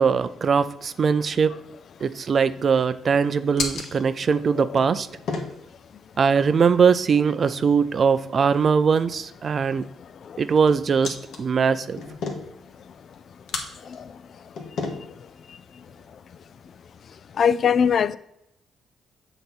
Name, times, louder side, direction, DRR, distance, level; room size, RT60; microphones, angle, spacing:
voice 1, 0.0-1.6 2.0-5.1 6.2-9.9 10.4-12.0, right 6 dB, 45° right, 0.4 m, -21 dB
sound 1, 1.6-16.9, left 4 dB, 70° left, 1.2 m, -38 dB
voice 2, 17.4-18.2, left 7 dB, 55° left, 0.3 m, -20 dB
6.9 x 3.9 x 6.1 m
cardioid pair, 90°, 0 cm